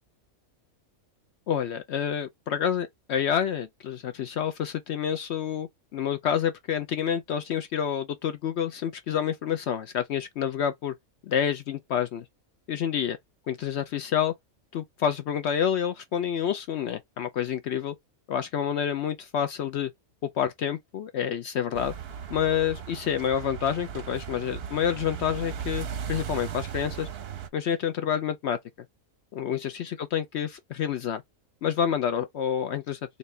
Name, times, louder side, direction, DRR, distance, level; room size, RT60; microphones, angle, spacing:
voice 1, 1.5-10.9 11.2-12.2 12.7-13.2 13.5-14.3 14.7-17.9 18.3-19.9 20.2-21.9 22.3-27.1 27.5-28.6 29.3-31.2 31.6-33.2, left 8 dB, 65° left, 0.7 m, -28 dB
sound 1, 21.7-27.5, right 8 dB, 55° right, 0.8 m, -37 dB
4.2 x 2.6 x 3.2 m
omnidirectional pair, 1.5 m